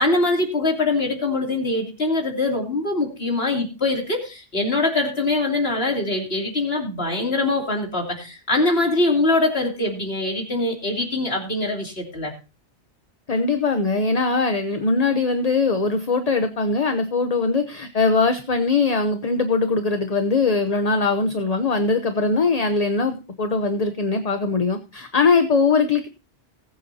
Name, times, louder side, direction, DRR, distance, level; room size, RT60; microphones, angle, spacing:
voice 1, 0.0-12.3, left 2 dB, 60° left, 1 dB, 3.2 m, -23 dB
voice 2, 13.3-26.1, left 4 dB, 35° left, 8 dB, 0.9 m, -21 dB
19.5 x 8.2 x 2.8 m, 0.31 s
omnidirectional pair, 1.2 m